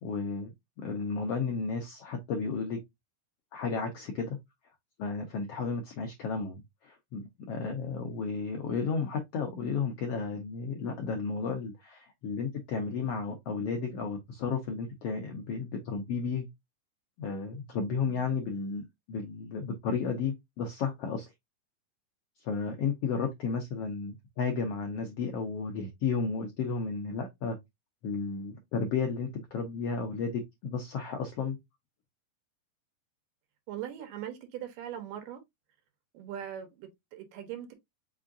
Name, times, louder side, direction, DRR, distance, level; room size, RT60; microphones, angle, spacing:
voice 1, 0.0-2.8 3.5-4.4 5.0-16.5 17.2-21.3 22.4-27.6 28.0-31.6, left 5 dB, 85° left, 1.4 m, -33 dB
voice 2, 33.7-35.4 36.1-37.7, right 10 dB, 85° right, 2.7 m, -40 dB
5.6 x 2.4 x 3.8 m
omnidirectional pair, 3.8 m